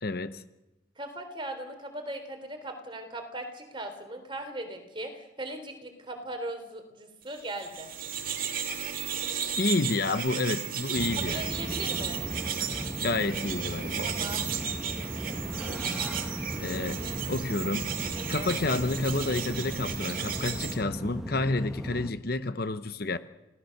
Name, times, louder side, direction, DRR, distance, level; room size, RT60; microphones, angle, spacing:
voice 1, 0.0-0.4 9.6-11.5 13.0-14.1 16.6-17.0 17.3-17.9 18.3-23.2, left 3 dB, 50° left, 0.9 m, -29 dB
voice 2, 1.0-7.9 11.3-12.2 14.0-14.4 16.9-17.1 18.2-18.5, right 1 dB, 25° right, 3.4 m, -39 dB
sound 1, 7.5-20.7, right 7 dB, 45° right, 2.3 m, -34 dB
sound 2, 10.9-22.1, equal, 5° right, 1.6 m, -37 dB
28.5 x 17.5 x 6.6 m
head